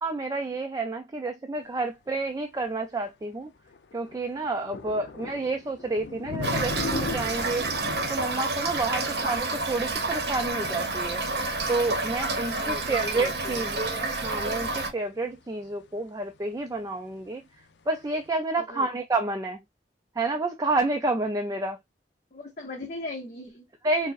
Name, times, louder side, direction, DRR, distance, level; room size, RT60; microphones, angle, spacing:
voice 1, 0.0-3.5 3.9-7.7 8.1-11.2 11.7-17.4 17.9-19.6 20.2-21.8 23.8-24.1, right 2 dB, 20° right, 0.3 m, -29 dB
sound 1, 2.9-3.0 3.7-13.2 13.5-14.9 15.1-15.4 15.6-15.7 16.7-16.9 18.0-18.3, left 4 dB, 85° left, 0.4 m, -39 dB
Toilet flush / Fill (with liquid), 6.4-14.9, right 3 dB, 65° right, 0.7 m, -29 dB
voice 2, 12.4-13.7 18.6-18.9 22.3-23.7, left 2 dB, 45° left, 0.8 m, -39 dB
4.5 x 2.0 x 2.4 m
head